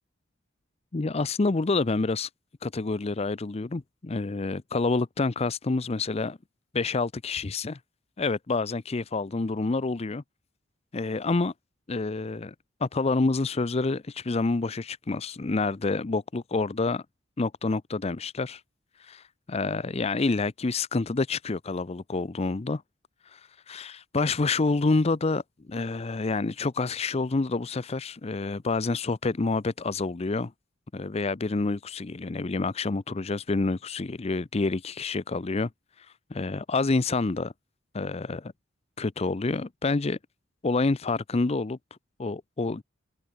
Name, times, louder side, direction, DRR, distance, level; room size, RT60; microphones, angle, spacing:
voice 1, 0.9-2.3 2.6-6.4 6.7-7.8 8.2-10.2 10.9-11.5 11.9-12.5 12.8-17.0 17.4-18.6 19.0-22.8 23.3-23.4 23.7-30.5 30.9-35.7 36.3-37.5 37.9-38.5 39.0-40.2 40.6-41.8 42.2-42.8, left 3 dB, 35° left, 0.6 m, -28 dB
open air
head